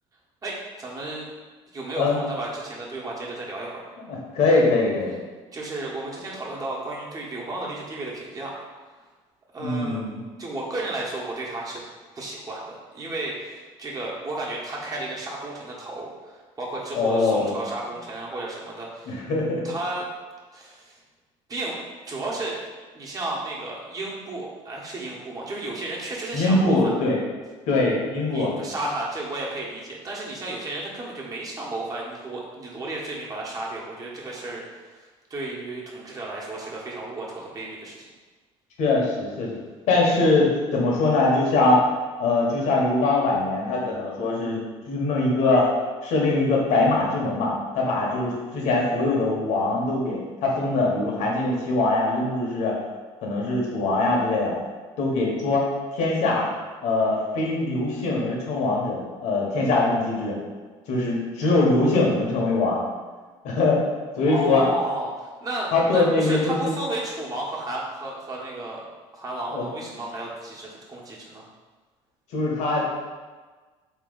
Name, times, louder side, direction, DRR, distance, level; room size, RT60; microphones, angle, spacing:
voice 1, 0.4-1.3 1.7-3.9 5.5-8.5 9.5-10.0 10.4-11.8 12.1-19.2 19.6-20.1 20.5-21.0 21.5-21.8 22.1-22.6 22.9-26.8 28.3-37.9 64.2-68.8 69.1-71.4, right 2 dB, 30° right, -4 dB, 1.3 m, -33 dB
voice 2, 4.1-5.1 9.6-10.2 16.9-17.5 19.1-19.6 26.3-27.2 27.7-28.5 38.8-39.6 39.9-41.8 42.2-44.6 44.9-45.7 46.0-52.7 53.2-54.5 55.0-55.7 55.9-56.4 56.8-60.3 60.9-62.8 63.4-63.8 64.2-64.6 65.7-66.7 69.5-69.7 72.3-72.9, left 2 dB, 75° left, -2 dB, 1.3 m, -22 dB
4.2 x 3.2 x 3.9 m, 1.4 s
cardioid pair, 95°, 12 cm